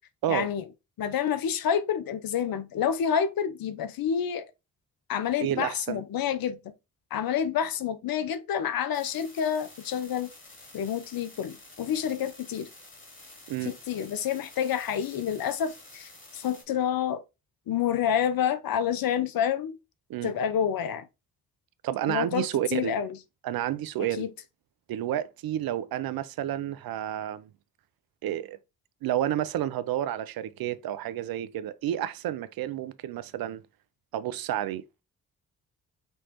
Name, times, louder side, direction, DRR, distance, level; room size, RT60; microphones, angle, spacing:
voice 1, 0.3-0.7 1.0-4.5 5.1-6.6 7.1-10.3 10.7-12.7 13.6-17.2 17.7-19.8 20.2-21.1 22.1-23.2 24.2-24.3, left 8 dB, 60° left, 0.8 m, -28 dB
voice 2, 5.4-6.0 13.5-13.7 20.1-20.3 21.8-23.0 23.4-24.3 24.9-27.5 28.2-28.6 29.0-33.6 34.1-34.8, right 12 dB, 65° right, 0.6 m, -30 dB
sound 1, 8.9-16.6, left 2 dB, 30° left, 2.6 m, -50 dB
5.5 x 3.0 x 2.9 m
hypercardioid pair, 40°, 39 cm